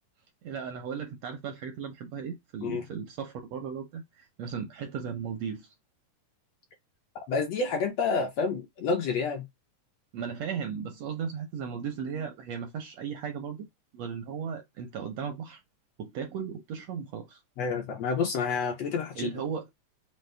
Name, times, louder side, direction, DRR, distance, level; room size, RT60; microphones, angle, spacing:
voice 1, 0.4-5.7 10.1-13.7 13.9-15.6 16.0-17.4 19.1-19.7, right 7 dB, 80° right, 1.5 m, -36 dB
voice 2, 7.1-9.5 17.6-19.3, left 5 dB, 70° left, 1.6 m, -29 dB
5.4 x 2.0 x 3.2 m
omnidirectional pair, 3.5 m